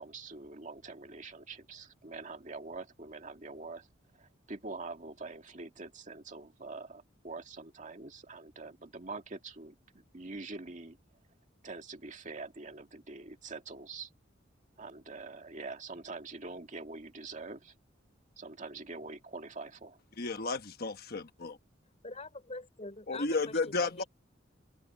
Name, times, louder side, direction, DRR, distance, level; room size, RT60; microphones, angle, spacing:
voice 1, 0.0-3.9 4.2-11.0 11.6-14.1 14.8-17.7 18.4-20.0, right 3 dB, 40° right, 2.1 m, -45 dB
voice 2, 20.2-21.6 23.1-24.0, left 3 dB, 50° left, 1.1 m, -33 dB
voice 3, 22.0-24.1, left 2 dB, 35° left, 5.7 m, -44 dB
open air
head